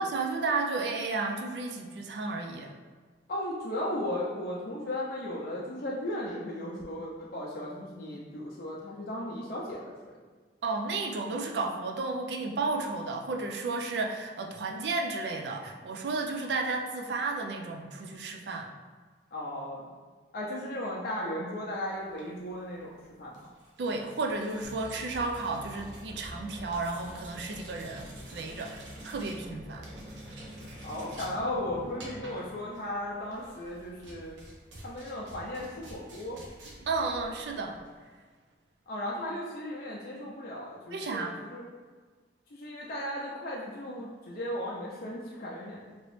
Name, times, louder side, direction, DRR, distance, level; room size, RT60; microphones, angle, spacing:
voice 1, 0.0-2.7 10.6-18.7 23.8-28.1 28.3-29.9 36.9-37.8 40.9-41.3, right 3 dB, 70° right, 3 dB, 0.4 m, -32 dB
voice 2, 3.3-10.1 19.3-19.9 20.3-23.5 30.8-34.4 34.8-36.4 38.9-41.7 42.5-45.9, left 1 dB, 55° left, -5 dB, 0.5 m, -36 dB
sound 1, 22.0-38.0, right 1 dB, 90° right, 0.7 m, -51 dB
sound 2, 24.6-32.3, equal, 25° right, 0.7 m, -46 dB
3.0 x 2.9 x 3.1 m, 1.4 s
head